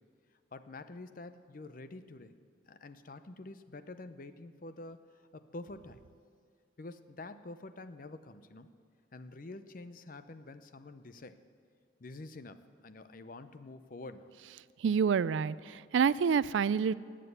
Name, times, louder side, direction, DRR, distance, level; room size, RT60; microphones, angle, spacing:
voice 1, 0.5-2.3 2.7-6.0 6.8-8.7 9.1-11.4 12.0-14.3, left 2 dB, 50° left, 11 dB, 0.6 m, -47 dB
voice 2, 14.8-16.9, right 6 dB, 85° right, 18 dB, 0.4 m, -28 dB
19.0 x 7.6 x 8.1 m, 2.1 s
head